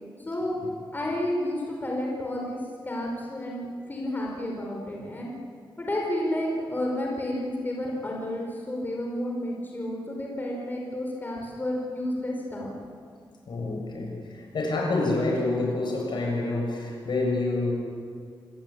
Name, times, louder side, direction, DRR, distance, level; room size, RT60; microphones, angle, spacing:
voice 1, 0.2-0.6 0.9-2.6 2.8-5.3 5.8-12.7, left 1 dB, 25° left, -1 dB, 4.9 m, -31 dB
voice 2, 13.5-17.7, left 2 dB, 70° left, 0 dB, 7.2 m, -27 dB
27.0 x 19.5 x 8.9 m, 2.1 s
wide cardioid pair, 145°, 8 cm